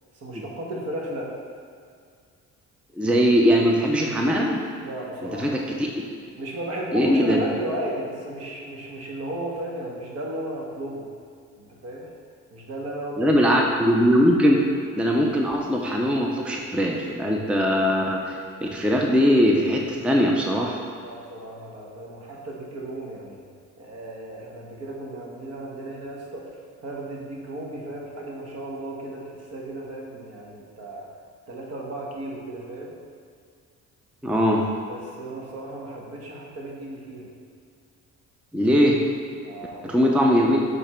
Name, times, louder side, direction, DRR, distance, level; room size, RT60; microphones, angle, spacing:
voice 1, 0.1-1.3 4.8-5.5 6.4-11.1 11.6-12.1 12.5-13.3 21.0-23.4 23.8-31.1 31.5-32.9 34.9-37.3 39.4-40.2, right 1 dB, 55° right, -2 dB, 1.3 m, -35 dB
voice 2, 3.0-4.6 5.2-5.9 6.9-7.4 13.2-14.6 14.9-20.8 34.2-34.6 38.5-39.0 39.8-40.6, equal, 5° right, 0 dB, 0.5 m, -20 dB
6.9 x 3.4 x 4.3 m, 2.2 s
cardioid pair, 90°, 30 cm